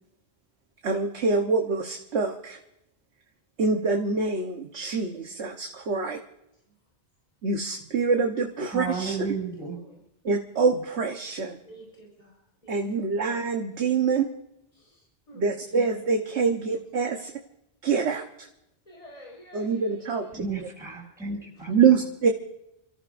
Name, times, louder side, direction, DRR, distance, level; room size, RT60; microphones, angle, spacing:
voice 1, 0.8-2.6 3.6-6.2 7.4-9.3 10.2-11.6 12.7-14.3 15.4-17.3 17.8-18.5 19.5-20.7 21.7-22.3, right 5 dB, 80° right, 3 dB, 1.4 m, -25 dB
voice 2, 8.7-9.8 20.3-21.7, right 4 dB, 5° right, -1 dB, 7.6 m, -33 dB
voice 3, 11.6-12.8 14.7-15.7 16.4-16.6 18.8-20.4, equal, 35° left, -2 dB, 4.7 m, -50 dB
30.0 x 14.0 x 2.6 m, 0.84 s
omnidirectional pair, 1.1 m